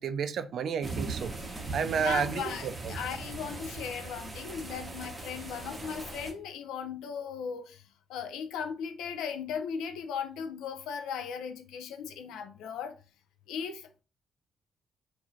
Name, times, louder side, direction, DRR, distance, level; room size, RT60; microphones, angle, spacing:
voice 1, 0.0-1.3 1.7-3.0, right 7 dB, 65° right, 0.3 m, -31 dB
sound 1, 0.8-6.3, right 3 dB, 25° right, 0.8 m, -39 dB
voice 2, 1.9-12.9 13.5-14.0, left 7 dB, 90° left, 0.4 m, -37 dB
2.5 x 2.4 x 3.1 m
cardioid pair, 90°, 0 cm